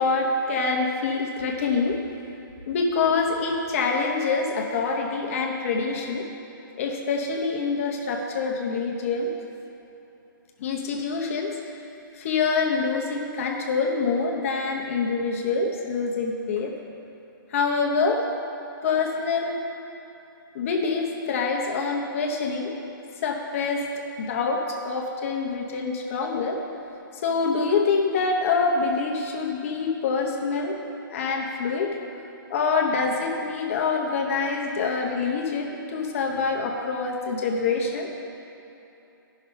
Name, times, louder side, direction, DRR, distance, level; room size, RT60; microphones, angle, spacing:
voice 1, 0.0-2.0 2.7-6.3 6.8-9.3 10.6-11.6 12.1-16.7 17.5-18.2 18.8-19.6 20.5-22.7 23.2-23.8 24.2-26.6 27.2-30.8 31.1-32.0 32.5-38.1, left 4 dB, 40° left, 1 dB, 0.9 m, -25 dB
12.0 x 5.9 x 5.5 m, 3.0 s
hypercardioid pair, 165°, 12 cm